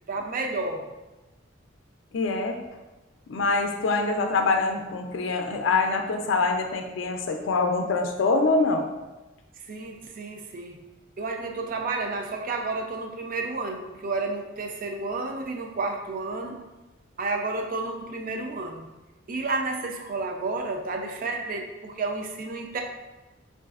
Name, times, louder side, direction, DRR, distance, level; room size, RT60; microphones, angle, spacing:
voice 1, 0.1-0.8 9.7-10.8 11.2-16.6 17.2-18.9 19.3-22.8, right 3 dB, 45° right, 3 dB, 0.4 m, -31 dB
voice 2, 2.1-2.6 3.3-8.9, left 3 dB, 70° left, 4 dB, 0.4 m, -24 dB
4.7 x 2.5 x 2.3 m, 1.1 s
head